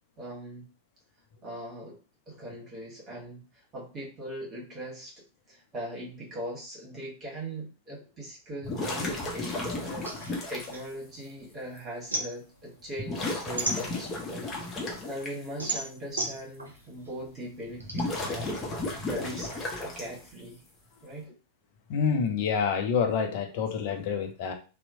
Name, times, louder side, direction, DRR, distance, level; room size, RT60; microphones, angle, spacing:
voice 1, 0.2-0.6 1.4-2.0 2.3-3.4 3.7-14.4 14.8-18.6 19.1-20.6 21.0-21.3, right 1 dB, 25° right, -3 dB, 1.3 m, -40 dB
sound 1, 8.6-10.7 11.8-11.9 13.0-15.3 17.7-20.3, left 2 dB, 20° left, 0.7 m, -33 dB
sound 2, 10.0-11.5 11.8-14.4 14.8-18.0, right 2 dB, 80° right, 0.6 m, -34 dB
voice 2, 21.9-24.5, left 6 dB, 50° left, 5 dB, 0.5 m, -27 dB
2.8 x 2.0 x 2.6 m, 0.35 s
figure-of-eight pair, 90°, 0 cm